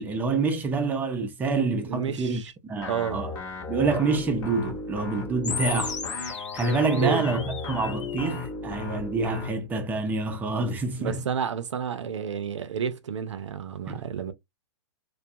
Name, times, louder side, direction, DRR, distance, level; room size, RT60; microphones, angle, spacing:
voice 1, 0.0-3.3 3.7-11.2 13.9-14.0, right 3 dB, 10° right, 0.4 m, -27 dB
voice 2, 1.9-2.5 2.9-3.2 7.0-7.2 11.0-14.3, right 8 dB, 85° right, 0.5 m, -30 dB
sound 1, 2.8-9.5, left 3 dB, 35° left, 0.9 m, -35 dB
sound 2, 5.4-8.4, left 5 dB, 85° left, 0.9 m, -35 dB
2.3 x 2.1 x 2.6 m
hypercardioid pair, 135°, 15 cm